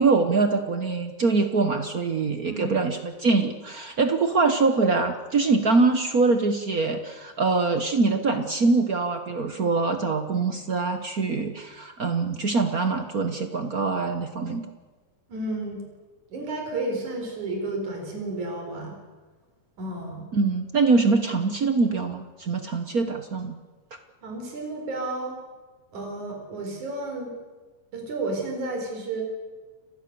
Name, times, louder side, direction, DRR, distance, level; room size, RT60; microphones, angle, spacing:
voice 1, 0.0-14.7 20.3-23.6, right 3 dB, 55° right, 7 dB, 1.0 m, -23 dB
voice 2, 2.4-2.8 15.3-15.8 16.3-19.0 19.8-20.2 24.2-25.4 25.9-27.3 27.9-29.2, right 2 dB, 80° right, 2 dB, 5.8 m, -32 dB
29.5 x 19.5 x 6.8 m, 1.3 s
omnidirectional pair, 3.3 m